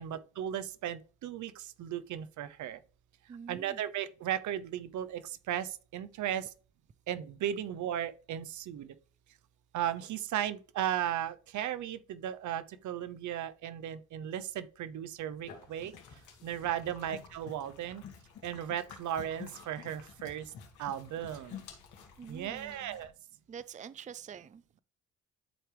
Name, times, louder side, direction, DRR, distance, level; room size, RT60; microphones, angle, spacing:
voice 1, 0.0-2.8 3.5-6.5 7.1-8.9 9.7-15.9 16.4-18.0 18.4-20.5 20.8-21.6 22.3-23.1, right 10 dB, 75° right, 0.9 m, -36 dB
voice 2, 3.3-3.8 22.2-23.0 23.5-24.8, right 7 dB, 25° right, 0.5 m, -46 dB
sound 1, 15.2-23.1, left 7 dB, 75° left, 2.4 m, -50 dB
12.0 x 4.6 x 3.4 m
cardioid pair, 90°, 30 cm